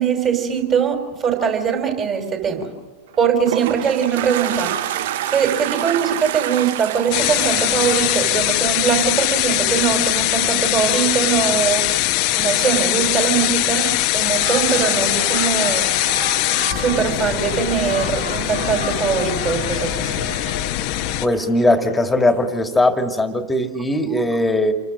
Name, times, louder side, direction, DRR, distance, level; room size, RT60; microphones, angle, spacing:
voice 1, 0.0-2.7 3.2-4.7 5.3-11.9 12.3-15.9 16.7-20.1, right 7 dB, 30° right, 4 dB, 5.0 m, -21 dB
Toilet flush, 3.1-9.5, right 12 dB, 55° right, 0.7 m, -27 dB
sound 1, 7.1-21.3, left 16 dB, 45° left, 1.1 m, -21 dB
sound 2, 14.3-22.4, right 1 dB, 85° right, 6.3 m, -32 dB
voice 2, 21.2-24.7, left 1 dB, 10° left, 6 dB, 2.3 m, -19 dB
29.0 x 23.0 x 6.4 m, 1.2 s
figure-of-eight pair, 90°, 0 cm